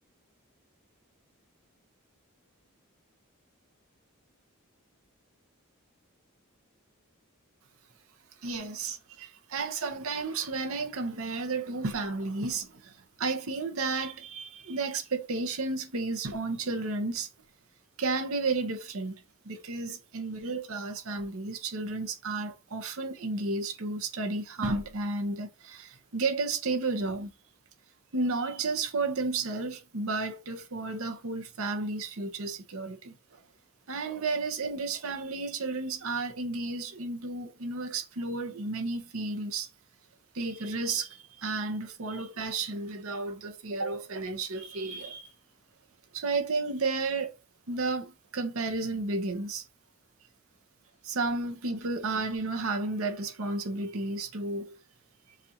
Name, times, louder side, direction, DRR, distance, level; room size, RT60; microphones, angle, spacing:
voice 1, 8.4-17.3 18.0-27.3 28.1-33.1 33.9-39.7 40.3-45.3 46.1-47.4 47.7-49.6 51.0-54.8, right 3 dB, 75° right, 0.8 m, -32 dB
7.3 x 2.5 x 2.8 m
head